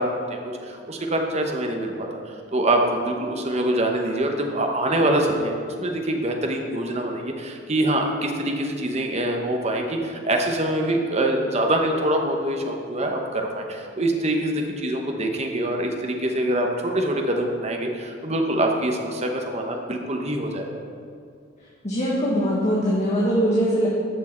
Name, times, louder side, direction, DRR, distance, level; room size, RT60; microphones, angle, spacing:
voice 1, 0.0-20.8, right 1 dB, 35° right, 2 dB, 1.0 m, -25 dB
voice 2, 21.8-23.9, equal, 35° left, -5 dB, 1.4 m, -21 dB
14.0 x 6.2 x 4.4 m, 2.3 s
head